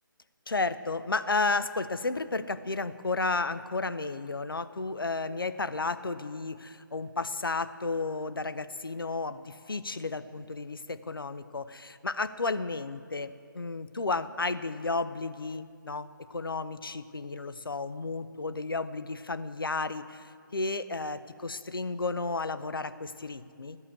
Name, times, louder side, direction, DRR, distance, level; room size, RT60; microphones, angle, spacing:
voice 1, 0.5-23.8, left 3 dB, 80° left, 12 dB, 0.5 m, -33 dB
13.5 x 5.6 x 8.1 m, 2.1 s
figure-of-eight pair, 145°, 12 cm